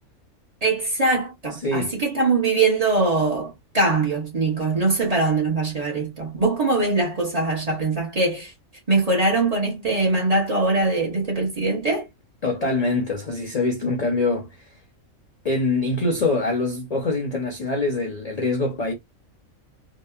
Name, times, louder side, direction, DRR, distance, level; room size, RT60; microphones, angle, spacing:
voice 1, 0.6-8.5 8.9-12.1, right 3 dB, 35° right, 0.8 m, -22 dB
voice 2, 1.5-2.0 12.4-14.5 15.4-18.9, left 2 dB, 60° left, 0.4 m, -24 dB
2.8 x 2.2 x 2.2 m
omnidirectional pair, 1.5 m